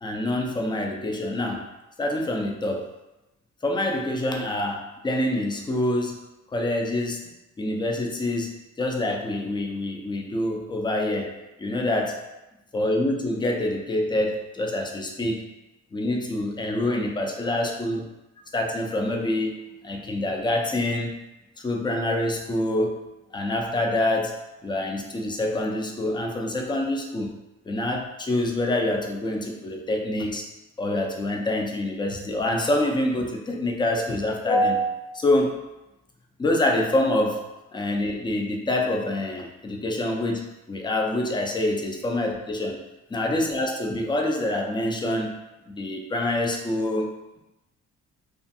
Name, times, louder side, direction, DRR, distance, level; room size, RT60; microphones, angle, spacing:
voice 1, 0.0-1.7 2.0-2.9 3.6-6.2 6.5-7.2 7.6-12.2 12.7-15.4 15.9-18.1 18.5-21.2 21.6-23.0 23.3-27.3 27.6-30.4 30.8-35.6 36.4-37.4 37.7-42.8 43.1-45.4 45.7-47.1, left 1 dB, 15° left, 1 dB, 0.4 m, -26 dB
2.4 x 2.3 x 2.6 m, 0.97 s
cardioid pair, 90°, 30 cm